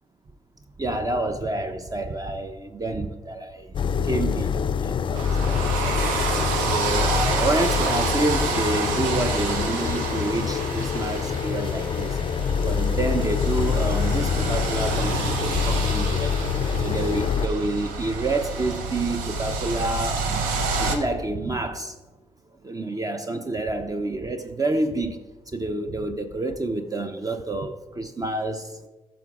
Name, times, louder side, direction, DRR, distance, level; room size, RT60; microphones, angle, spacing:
voice 1, 0.8-3.7 4.0-6.3 6.6-12.2 12.6-16.4 16.8-20.5 20.8-21.9 22.6-25.2 25.5-28.8, right 2 dB, 25° right, 8 dB, 0.6 m, -28 dB
sound 1, 3.7-17.5, left 7 dB, 35° left, 0.4 m, -25 dB
sound 2, 5.1-21.0, right 4 dB, 75° right, 0.8 m, -29 dB
14.0 x 6.2 x 2.4 m, 1.2 s
hypercardioid pair, 45°, 14 cm